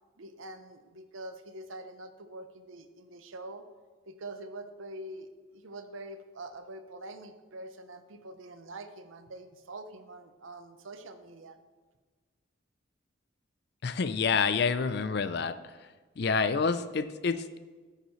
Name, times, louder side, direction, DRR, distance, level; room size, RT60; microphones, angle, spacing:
voice 1, 0.2-3.6 4.1-11.6, right 2 dB, 75° right, 9 dB, 0.8 m, -45 dB
voice 2, 13.8-15.6 16.2-17.6, left 5 dB, 50° left, 13 dB, 0.4 m, -28 dB
14.0 x 6.6 x 3.1 m, 1.4 s
head